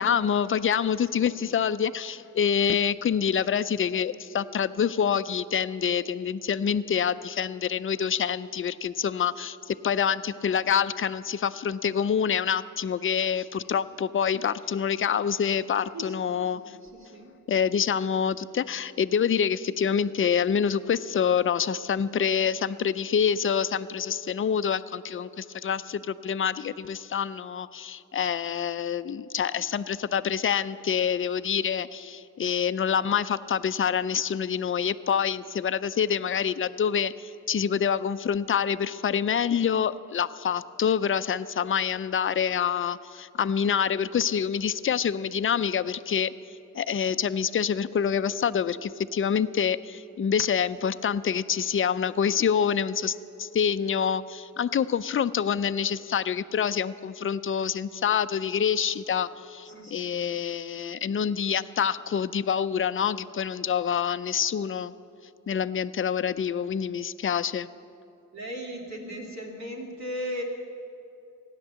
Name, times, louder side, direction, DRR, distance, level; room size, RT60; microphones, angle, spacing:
voice 1, 0.0-16.8 17.5-46.3 46.7-64.9 65.5-67.7, left 7 dB, 40° left, 14 dB, 0.5 m, -26 dB
voice 2, 1.1-1.5 15.9-16.3 16.6-17.3 59.6-60.1 68.3-70.4, equal, 55° right, -1 dB, 2.7 m, -37 dB
16.0 x 10.5 x 7.6 m, 2.7 s
wide cardioid pair, 95°, 33 cm